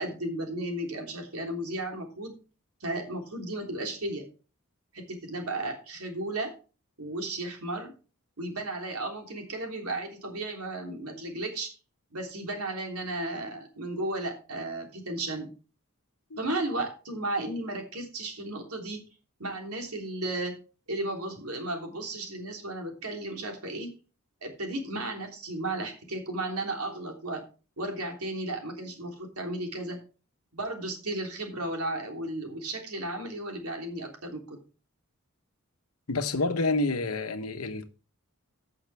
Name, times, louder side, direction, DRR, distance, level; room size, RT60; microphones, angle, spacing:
voice 1, 0.0-2.3 2.8-4.2 4.9-6.6 7.0-7.9 8.4-11.7 12.1-15.5 16.4-19.0 19.4-20.5 20.9-23.9 24.4-27.4 27.8-30.0 30.5-34.6, right 2 dB, 85° right, 3.3 m, -34 dB
voice 2, 36.1-37.9, left 3 dB, 75° left, 1.1 m, -28 dB
15.0 x 6.5 x 3.4 m
head